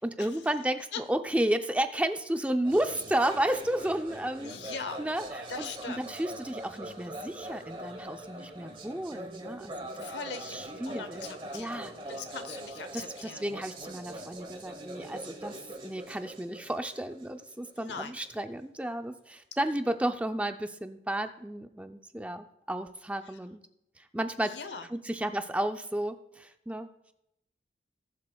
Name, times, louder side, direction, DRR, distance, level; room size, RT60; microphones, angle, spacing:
voice 1, 0.0-4.5 5.0-5.7 6.0-10.1 10.4-11.3 11.5-11.9 12.9-23.6 24.0-24.5 24.9-26.9, right 1 dB, 10° right, 8 dB, 0.4 m, -32 dB
sound 1, 2.6-18.5, right 1 dB, 30° right, 1.1 m, -43 dB
voice 2, 4.4-5.1 5.5-6.0 9.9-10.6 10.9-13.5 17.8-18.1 24.4-24.9, left 5 dB, 85° left, 10 dB, 0.8 m, -40 dB
19.0 x 7.4 x 2.3 m, 0.83 s
head